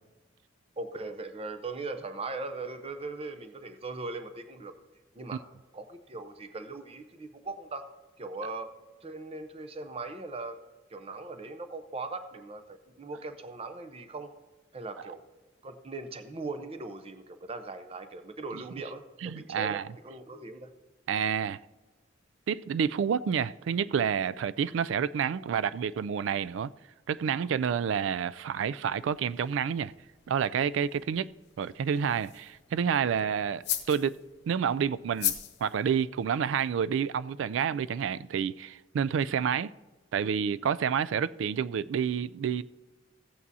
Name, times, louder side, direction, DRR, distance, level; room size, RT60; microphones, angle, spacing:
voice 1, 0.8-4.8 5.1-5.4 5.7-7.9 8.2-8.7 9.0-10.6 10.9-14.3 14.7-15.2 15.6-20.7, right 3 dB, 30° right, 0.6 m, -39 dB
voice 2, 19.2-19.8 21.1-21.6 22.5-26.7 27.1-29.9 30.3-31.3 31.6-34.2 34.5-35.3 35.6-39.7 40.1-42.6, right 7 dB, 70° right, 0.3 m, -29 dB
sound 1, 28.8-36.7, left 11 dB, 60° left, 0.9 m, -40 dB
15.5 x 8.5 x 2.7 m
head